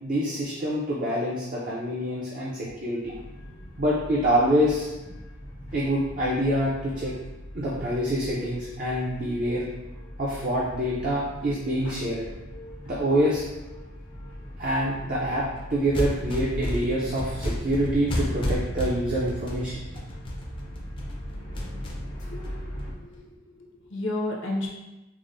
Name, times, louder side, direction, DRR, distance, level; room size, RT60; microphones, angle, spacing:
voice 1, 0.0-3.1 3.8-4.9 5.7-7.1 7.5-9.6 10.2-12.2 12.9-13.4 14.6-19.8, equal, 40° right, -6 dB, 0.5 m, -26 dB
sound 1, 3.0-22.9, equal, 85° left, 1.1 m, -40 dB
sound 2, 15.7-23.2, left 1 dB, 25° left, 0.4 m, -32 dB
voice 2, 22.3-22.6 23.0-24.7, left 2 dB, 65° left, -2 dB, 0.7 m, -32 dB
4.8 x 2.1 x 2.5 m, 1.0 s
head